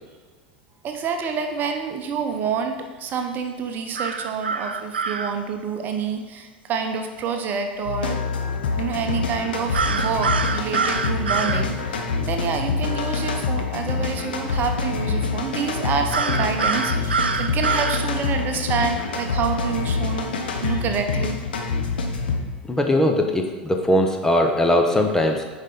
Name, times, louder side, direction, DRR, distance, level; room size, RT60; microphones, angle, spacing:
voice 1, 0.8-8.2 8.8-21.4, right 6 dB, 35° right, 5 dB, 1.0 m, -28 dB
sound 1, 4.0-5.3 9.7-11.6 16.1-18.0, right 5 dB, 75° right, 0.5 m, -25 dB
sound 2, 7.8-22.4, left 4 dB, 70° left, 1.0 m, -26 dB
voice 2, 22.7-25.4, left 1 dB, 10° left, 3 dB, 0.9 m, -20 dB
9.9 x 5.3 x 4.2 m, 1.5 s
figure-of-eight pair, 80°, 5 cm